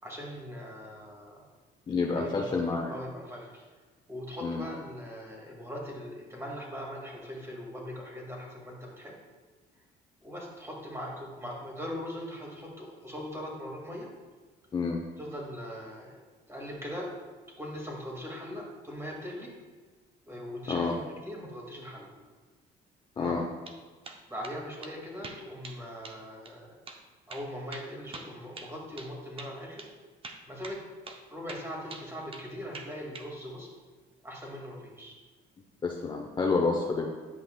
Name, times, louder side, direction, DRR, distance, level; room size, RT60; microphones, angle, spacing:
voice 1, 0.0-1.4 2.0-3.6 4.1-9.1 10.2-14.1 15.2-17.1 17.6-19.5 20.3-22.1 23.2-23.4 24.3-26.8 27.3-29.9 30.5-30.8 31.3-33.7 34.2-35.2, equal, 15° right, -2 dB, 2.1 m, -40 dB
voice 2, 1.9-2.9 4.4-4.7 14.7-15.0 20.7-21.0 23.2-23.5 35.8-37.1, left 4 dB, 25° left, 1 dB, 0.7 m, -29 dB
sound 1, 23.4-23.8 24.0-24.6 24.8-24.9 25.2-25.8 26.0-26.2 26.5-26.6 26.9-27.0 27.3-29.1 29.4-29.5 29.8-29.9 30.2-30.8 31.1-31.2 31.5-32.5 32.7-33.3, right 3 dB, 35° right, 0.7 m, -44 dB
10.0 x 5.6 x 2.3 m, 1.4 s
cardioid pair, 110°, 17 cm